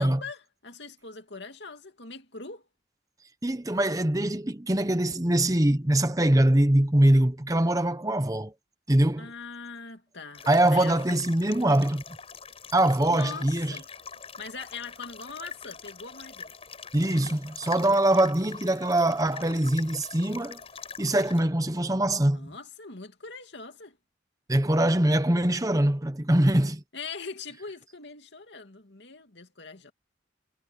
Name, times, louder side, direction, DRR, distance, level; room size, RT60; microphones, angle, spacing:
voice 1, 0.0-2.6 9.2-11.2 13.1-13.9 14.4-16.5 22.3-24.0 26.9-29.9, left 4 dB, 70° left, 2.4 m, -42 dB
voice 2, 3.4-8.5 8.9-9.3 10.5-12.0 12.7-13.8 16.9-20.6 21.0-22.5 24.5-26.8, right 1 dB, 20° right, 0.9 m, -23 dB
sound 1, 10.3-21.4, left 6 dB, 30° left, 7.7 m, -44 dB
head